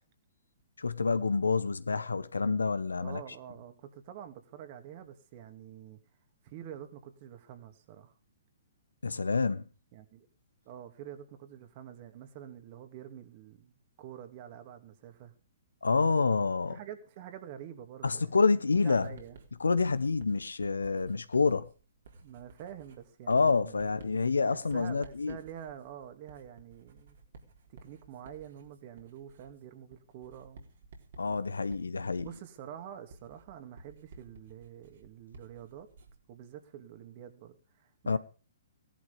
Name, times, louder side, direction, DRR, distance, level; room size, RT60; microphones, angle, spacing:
voice 1, 0.8-3.2 9.0-9.6 15.8-16.8 18.0-19.1 19.6-21.7 23.3-25.4 31.2-32.3 38.1-38.2, left 4 dB, 80° left, 1.2 m, -28 dB
voice 2, 3.0-6.0 6.4-8.1 9.9-10.3 10.7-15.3 16.7-19.4 22.2-23.9 24.4-27.2 27.7-30.7 32.2-35.9 36.3-38.2, right 10 dB, 40° right, 2.6 m, -47 dB
Writing, 19.0-36.3, right 3 dB, 60° right, 3.9 m, -55 dB
17.5 x 11.5 x 5.3 m
figure-of-eight pair, 125°, 0 cm